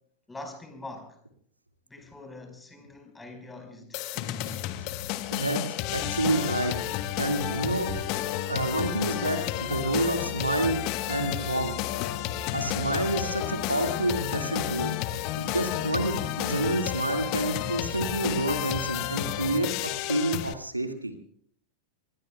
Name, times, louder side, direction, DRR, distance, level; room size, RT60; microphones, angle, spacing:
voice 1, 0.3-1.2 1.9-4.5, left 2 dB, 10° left, 5 dB, 5.0 m, -44 dB
sound 1, 3.9-20.5, left 13 dB, 45° left, 1.2 m, -31 dB
voice 2, 5.3-6.7 7.2-7.9 8.5-10.8 11.1-11.7 12.5-14.9 15.4-21.1, right 1 dB, 90° right, 5 dB, 2.1 m, -28 dB
Female singing, 6.0-13.1 13.7-13.8, right 4 dB, 60° right, 6.9 m, -46 dB
26.0 x 20.5 x 2.3 m, 0.63 s
figure-of-eight pair, 90°, 0 cm